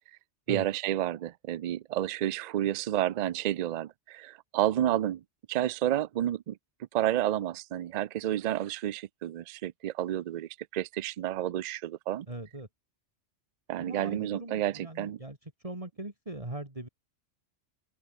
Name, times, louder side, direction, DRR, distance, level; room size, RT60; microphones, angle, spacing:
voice 1, 0.5-5.2 5.5-6.6 6.9-12.3 13.7-15.2, right 12 dB, 60° right, 0.4 m, -30 dB
voice 2, 12.3-12.7 13.8-15.4 15.6-16.9, right 1 dB, 30° right, 3.6 m, -40 dB
open air
omnidirectional pair, 1.2 m